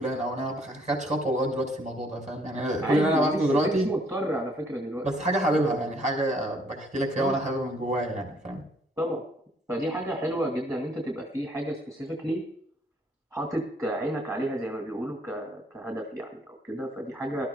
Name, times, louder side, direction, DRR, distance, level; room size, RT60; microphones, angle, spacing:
voice 1, 0.0-3.9 5.0-8.6, right 1 dB, 40° right, 1 dB, 4.5 m, -27 dB
voice 2, 2.8-5.1 7.1-7.4 9.0-9.2 9.7-12.4 13.3-17.5, right 1 dB, 15° right, 0 dB, 2.2 m, -31 dB
18.0 x 12.5 x 2.2 m, 0.63 s
wide cardioid pair, 80°, 20 cm